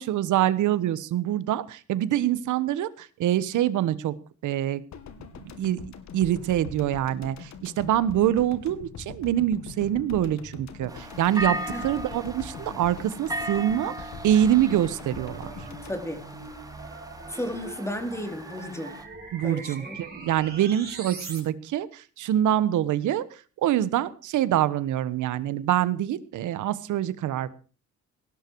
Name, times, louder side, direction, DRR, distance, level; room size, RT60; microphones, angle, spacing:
voice 1, 0.0-4.2 4.4-4.8 5.6-11.6 11.8-15.5 19.3-23.2 23.6-27.5, right 11 dB, 80° right, 1.3 m, -25 dB
sound 1, 4.9-17.1 17.4-17.5, left 6 dB, 65° left, 2.4 m, -43 dB
sound 2, 10.9-19.0, right 1 dB, 10° right, 2.6 m, -37 dB
sound 3, 15.1-21.4, right 4 dB, 35° right, 6.6 m, -42 dB
voice 2, 15.8-16.2 17.3-18.9 19.4-20.4, left 1 dB, 10° left, 3.8 m, -34 dB
18.0 x 12.0 x 4.7 m
cardioid pair, 90°, 30 cm